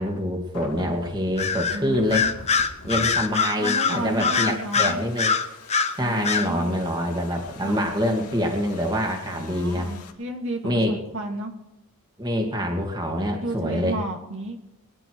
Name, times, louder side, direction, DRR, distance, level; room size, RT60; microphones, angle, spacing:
voice 1, 0.0-2.3 2.8-5.3 6.0-9.9 10.6-10.9 12.2-14.0, equal, 20° right, 2 dB, 2.4 m, -25 dB
sound 1, 0.5-10.1, left 3 dB, 85° left, 2.4 m, -44 dB
Bird vocalization bird call bird song, 1.4-1.8 2.1-5.9 6.2-6.5, left 5 dB, 30° left, 1.0 m, -23 dB
voice 2, 1.7-2.3 3.6-5.0 6.0-6.8 7.6-7.9 9.3-11.5 13.3-14.6, right 1 dB, 60° right, 2 dB, 2.3 m, -32 dB
23.5 x 11.0 x 4.7 m, 0.85 s
head